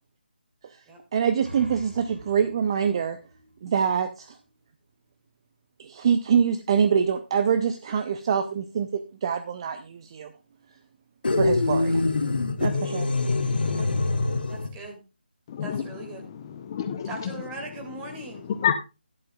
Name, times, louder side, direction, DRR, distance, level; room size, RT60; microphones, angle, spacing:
voice 1, 1.1-3.2 3.6-4.4 6.0-10.3 11.4-12.0 12.6-13.1 13.8-13.9, right 7 dB, 30° right, 0.6 m, -25 dB
sound 1, 1.1-4.6, equal, 70° right, 3.2 m, -46 dB
sound 2, 11.2-14.7, left 3 dB, 60° left, 1.2 m, -24 dB
voice 2, 14.5-15.0 15.6-16.3 17.0-18.5, right 3 dB, 15° right, 2.2 m, -39 dB
voice 3, 15.5-15.8 16.2-17.3 18.6-18.7, left 9 dB, 25° left, 0.6 m, -28 dB
13.5 x 11.0 x 2.3 m
figure-of-eight pair, 155°, 6 cm